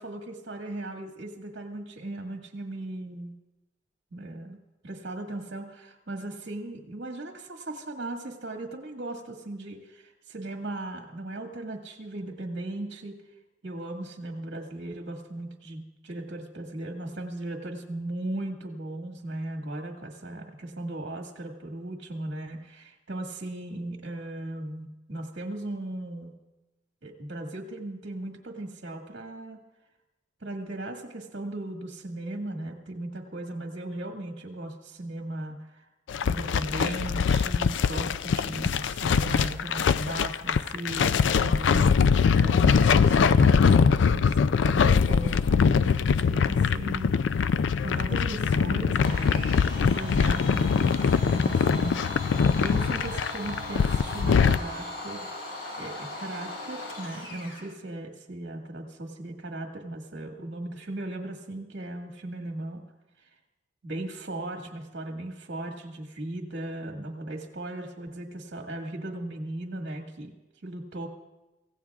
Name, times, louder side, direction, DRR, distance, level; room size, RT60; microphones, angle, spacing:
voice 1, 0.0-3.3 4.1-4.6 4.8-13.2 13.6-26.3 27.0-29.6 30.4-35.9 36.2-44.4 44.6-47.4 47.8-52.3 52.6-55.3 55.8-62.8 63.8-70.3 70.6-71.1, right 1 dB, 70° right, 1 dB, 1.8 m, -37 dB
sound 1, 36.1-54.6, left 6 dB, 90° left, 0.4 m, -23 dB
Domestic sounds home sounds, 49.0-57.7, left 1 dB, 70° left, 4.1 m, -38 dB
25.5 x 16.0 x 2.4 m, 1.0 s
head